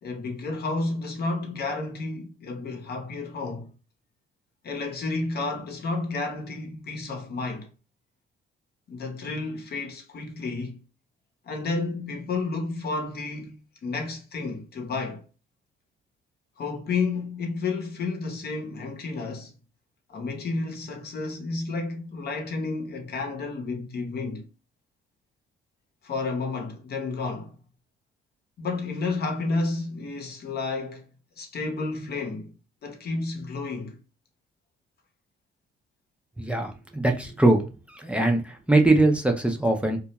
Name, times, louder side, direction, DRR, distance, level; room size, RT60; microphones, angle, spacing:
voice 1, 0.0-3.7 4.6-7.7 8.9-10.8 11.5-13.6 13.8-15.2 16.6-19.5 20.1-24.4 26.0-27.5 28.6-31.1 31.4-32.6 32.8-34.0, left 3 dB, 55° left, 0.8 m, -31 dB
voice 2, 36.4-37.6 38.0-40.0, right 2 dB, 5° right, 0.5 m, -21 dB
2.4 x 2.1 x 2.8 m
cardioid pair, 90°, 20 cm